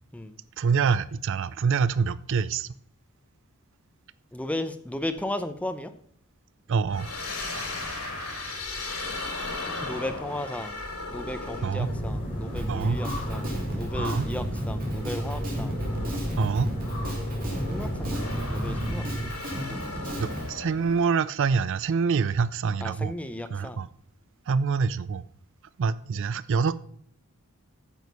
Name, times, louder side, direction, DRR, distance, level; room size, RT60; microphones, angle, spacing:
voice 1, 0.6-2.7 6.7-7.1 11.6-11.9 12.7-13.0 14.0-14.3 16.4-16.7 18.1-18.2 20.2-23.1 23.5-23.9 24.5-25.2 25.8-26.8, right 5 dB, 55° right, 17 dB, 0.4 m, -26 dB
voice 2, 4.3-5.9 9.8-10.8 11.1-15.8 17.6-19.0 19.6-20.3 22.8-23.8, left 1 dB, 5° left, 9 dB, 0.6 m, -35 dB
sound 1, 6.9-21.0, left 2 dB, 80° left, 4.7 m, -37 dB
sound 2, 11.8-19.3, equal, 25° left, 4.6 m, -32 dB
Drum kit, 12.6-20.5, equal, 40° right, 2.6 m, -36 dB
9.3 x 6.4 x 5.4 m, 0.65 s
head